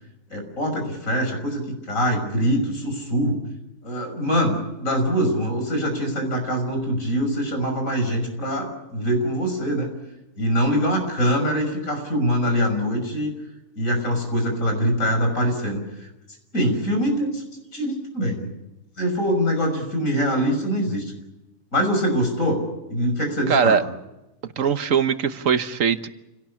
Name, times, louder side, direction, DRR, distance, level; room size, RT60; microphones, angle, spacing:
voice 1, 0.3-3.4 3.8-9.9 10.4-13.3 13.8-15.8 16.5-17.4 17.7-18.5 19.0-21.1 21.7-22.6 22.9-23.8, equal, 85° left, 4 dB, 6.4 m, -23 dB
voice 2, 23.5-23.8 24.6-26.1, right 7 dB, 75° right, 11 dB, 1.5 m, -21 dB
29.0 x 18.0 x 8.5 m, 0.96 s
omnidirectional pair, 1.4 m